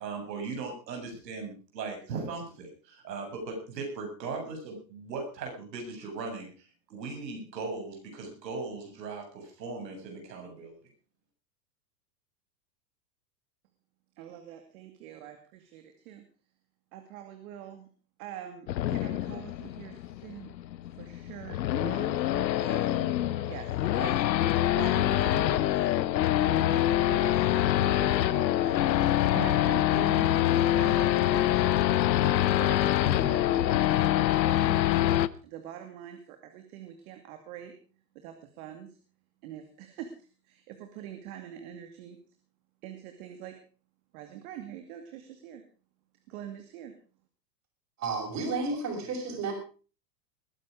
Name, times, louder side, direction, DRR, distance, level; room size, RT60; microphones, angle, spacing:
voice 1, 0.0-10.8, right 4 dB, 80° right, 3 dB, 7.4 m, -38 dB
voice 2, 14.2-16.2 16.9-17.9 18.2-20.5 21.0-25.9 26.4-34.8 35.4-37.8 38.1-39.0 39.4-40.1 40.4-42.2 42.8-43.6 44.1-45.6 46.3-46.9, right 10 dB, 60° right, 7 dB, 2.5 m, -44 dB
Race car auto racing / Idling / Accelerating revving vroom, 18.7-35.3, left 13 dB, 85° left, 0.9 m, -25 dB
voice 3, 48.0-49.5, right 3 dB, 35° right, 3 dB, 6.4 m, -32 dB
21.0 x 9.9 x 4.9 m, 0.37 s
hypercardioid pair, 125°, 50 cm